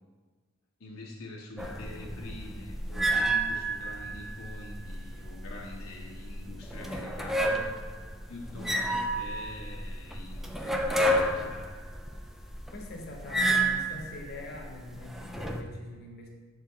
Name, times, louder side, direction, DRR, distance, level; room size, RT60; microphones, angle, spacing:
voice 1, 0.8-8.0 8.3-11.6, left 2 dB, 70° left, -2 dB, 0.9 m, -45 dB
sound 1, 1.6-15.6, right 1 dB, ahead, 0.3 m, -31 dB
voice 2, 12.7-16.3, left 2 dB, 50° left, -1 dB, 1.0 m, -43 dB
6.7 x 4.6 x 3.5 m, 1.4 s
head